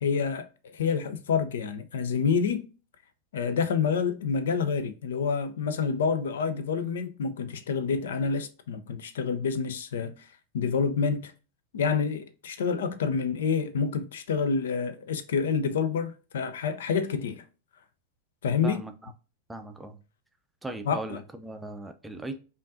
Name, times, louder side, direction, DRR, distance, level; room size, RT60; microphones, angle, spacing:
voice 1, 0.0-2.7 3.3-10.1 10.5-11.3 11.7-17.4 18.4-18.8 20.9-21.2, left 5 dB, 60° left, 0.4 m, -28 dB
voice 2, 19.5-20.0 20.6-22.4, right 2 dB, 5° right, 0.5 m, -38 dB
5.2 x 2.5 x 2.5 m
figure-of-eight pair, 90°, 0 cm